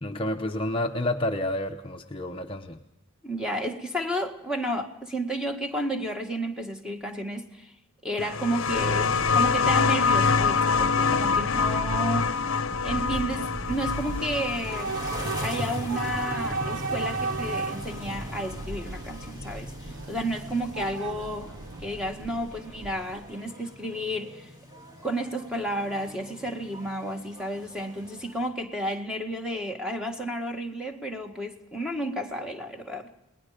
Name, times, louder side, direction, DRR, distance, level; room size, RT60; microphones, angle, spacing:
voice 1, 0.0-2.8, left 1 dB, 25° left, 0.8 m, -29 dB
voice 2, 3.2-7.7 8.0-12.3 12.8-15.0 15.4-21.5 21.8-24.5 25.0-33.1, right 1 dB, 5° right, 1.8 m, -32 dB
sound 1, 8.2-17.5 18.6-18.7, left 5 dB, 65° left, 0.8 m, -26 dB
Train / Subway metro underground, 8.5-23.3, right 3 dB, 70° right, 1.0 m, -36 dB
sound 2, 13.7-28.5, equal, 20° right, 3.7 m, -40 dB
30.0 x 20.0 x 5.1 m
head